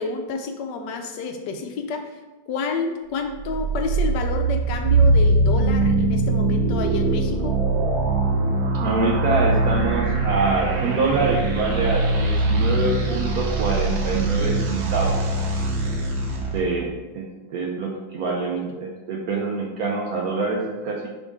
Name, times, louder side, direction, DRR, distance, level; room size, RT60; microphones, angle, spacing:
voice 1, 0.0-2.1 2.5-7.6 18.3-18.4, left 4 dB, 75° left, 5 dB, 1.2 m, -29 dB
sound 1, 3.3-16.6, right 2 dB, 85° right, 1.8 m, -22 dB
voice 2, 8.7-15.1 16.5-21.1, right 3 dB, 60° right, 0 dB, 1.0 m, -25 dB
7.3 x 3.9 x 3.6 m, 1.1 s
omnidirectional pair, 2.0 m